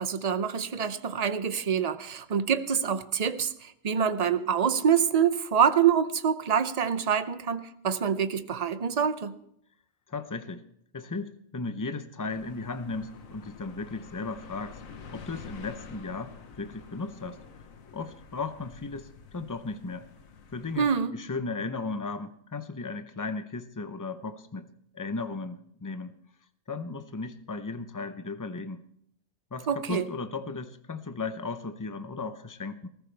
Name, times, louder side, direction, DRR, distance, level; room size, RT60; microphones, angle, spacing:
voice 1, 0.0-9.3 20.8-21.1 29.7-30.0, right 7 dB, 50° right, 12 dB, 0.4 m, -26 dB
voice 2, 10.1-10.6 10.9-14.8 15.1-17.4 17.9-20.1 20.5-24.7 24.9-26.1 26.7-28.8 29.5-32.9, left 3 dB, 25° left, 9 dB, 0.5 m, -36 dB
sound 1, 12.3-21.0, left 5 dB, 70° left, 1.5 m, -48 dB
20.0 x 14.0 x 3.4 m, 0.71 s
omnidirectional pair, 1.5 m